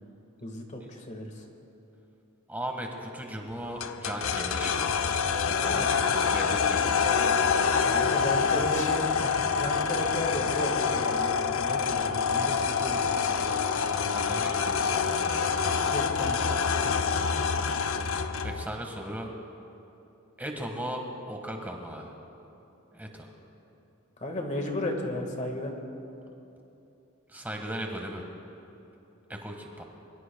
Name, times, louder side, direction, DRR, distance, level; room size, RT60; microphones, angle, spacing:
voice 1, 0.4-1.4 5.7-6.1 7.8-13.0 15.9-16.6 24.2-25.7, left 1 dB, 35° left, 3 dB, 1.7 m, -34 dB
voice 2, 2.5-5.0 5.4-5.9 6.2-7.3 13.9-15.4 18.4-19.3 20.4-22.1 22.9-23.3 27.3-28.2 29.3-29.8, equal, 10° right, 2 dB, 1.6 m, -37 dB
sound 1, 3.8-18.6, left 6 dB, 80° left, 0.7 m, -26 dB
24.0 x 22.5 x 2.3 m, 2.9 s
head